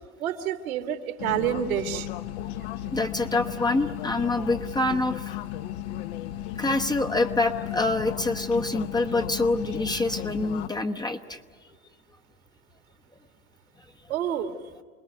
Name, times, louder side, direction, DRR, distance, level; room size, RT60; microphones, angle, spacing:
voice 1, 0.2-2.1 14.1-14.5, right 10 dB, 70° right, 6 dB, 2.4 m, -28 dB
sound 1, 1.2-10.7, left 12 dB, 50° left, 1.1 m, -35 dB
voice 2, 2.9-5.4 6.6-11.4, left 2 dB, 10° left, 4 dB, 1.0 m, -26 dB
28.0 x 20.0 x 9.3 m, 1.5 s
hypercardioid pair, 100°, 44 cm